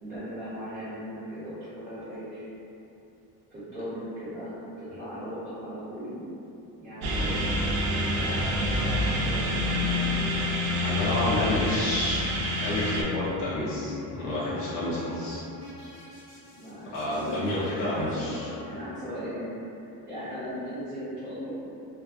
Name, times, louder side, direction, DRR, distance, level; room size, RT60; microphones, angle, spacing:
voice 1, 0.0-2.5 3.5-6.2 6.8-9.4 9.7-10.3 16.5-18.3 18.6-19.5 20.1-21.6, equal, 20° right, -17 dB, 0.8 m, -38 dB
sound 1, 7.0-13.0, left 1 dB, 75° right, 0.5 m, -27 dB
voice 2, 10.8-12.2 12.6-15.4 16.9-18.4, left 1 dB, 35° left, -10 dB, 0.5 m, -29 dB
sound 2, 13.1-19.3, left 2 dB, 10° left, 0.8 m, -43 dB
2.5 x 2.4 x 2.4 m, 2.7 s
cardioid pair, 160°, 38 cm